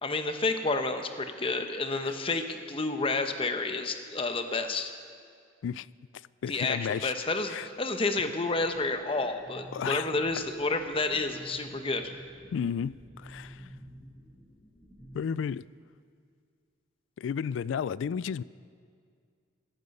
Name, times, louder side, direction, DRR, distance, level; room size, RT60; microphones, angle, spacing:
voice 1, 0.0-4.9 6.5-12.1, left 3 dB, 30° left, 7 dB, 0.9 m, -30 dB
voice 2, 6.4-7.1 7.5-7.7 9.7-10.1 12.5-13.6 15.1-15.7 17.2-18.4, left 7 dB, 80° left, 20 dB, 0.3 m, -32 dB
sound 1, 8.5-15.2, equal, 45° left, 3.2 m, -50 dB
16.0 x 14.0 x 5.4 m, 2.1 s
head